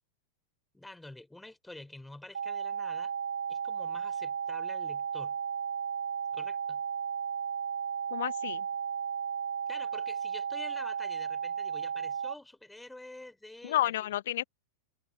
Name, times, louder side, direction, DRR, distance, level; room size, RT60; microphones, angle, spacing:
voice 1, 0.7-3.1 3.5-5.4 6.3-6.8 9.7-14.1, left 2 dB, 5° left, 4.0 m, -48 dB
sound 1, 2.3-12.3, right 7 dB, 70° right, 0.6 m, -34 dB
voice 2, 8.1-8.6 13.6-14.4, left 13 dB, 55° left, 1.1 m, -30 dB
figure-of-eight pair, 90°, 0 cm